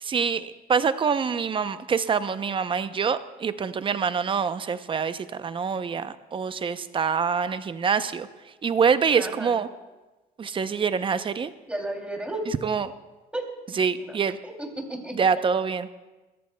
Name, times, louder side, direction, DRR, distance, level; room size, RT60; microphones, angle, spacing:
voice 1, 0.0-8.3 8.6-9.7 10.4-11.5 12.6-12.9 13.7-14.4 15.1-15.9, right 6 dB, 30° right, 12 dB, 0.6 m, -25 dB
voice 2, 9.2-9.6 11.7-12.4 13.3-13.4 14.0-14.2 14.4-15.2, right 2 dB, 5° right, 1 dB, 2.8 m, -33 dB
27.0 x 14.0 x 2.2 m, 1.1 s
cardioid pair, 110°, 17 cm